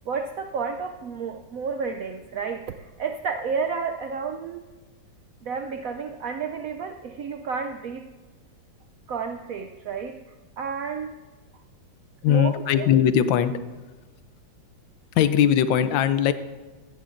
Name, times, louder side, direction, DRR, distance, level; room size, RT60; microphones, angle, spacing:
voice 1, 0.1-4.7 5.4-8.1 9.1-10.2 10.6-11.2 12.3-12.9, right 5 dB, 75° right, 6 dB, 0.8 m, -31 dB
voice 2, 12.2-13.5 15.2-16.3, left 9 dB, 85° left, 12 dB, 1.4 m, -20 dB
16.0 x 14.0 x 2.6 m, 1.3 s
omnidirectional pair, 2.0 m